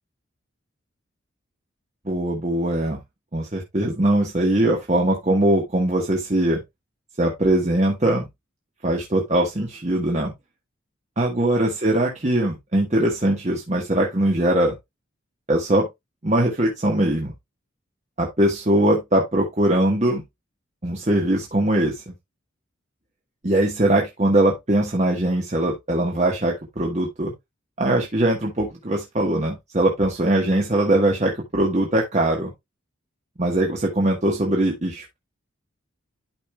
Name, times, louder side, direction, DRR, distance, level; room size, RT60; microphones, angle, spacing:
voice 1, 2.0-3.0 3.3-6.6 7.2-8.3 8.8-10.3 11.2-14.7 15.5-15.9 16.2-17.3 18.2-20.2 20.8-22.1 23.4-27.3 27.8-32.5 33.4-35.2, right 1 dB, 35° right, 1.2 m, -21 dB
12.0 x 5.2 x 2.2 m
head